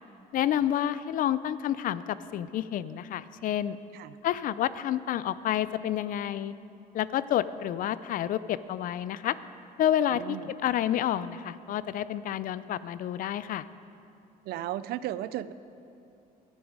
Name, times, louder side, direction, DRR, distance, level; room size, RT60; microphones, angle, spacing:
voice 1, 0.3-3.8 4.2-6.5 6.9-9.4 9.8-10.4 10.6-13.7, left 11 dB, 55° left, 16 dB, 0.4 m, -29 dB
voice 2, 10.1-10.5 14.5-15.5, right 13 dB, 70° right, 15 dB, 0.4 m, -35 dB
12.0 x 9.6 x 4.8 m, 2.7 s
cardioid pair, 110°, 17 cm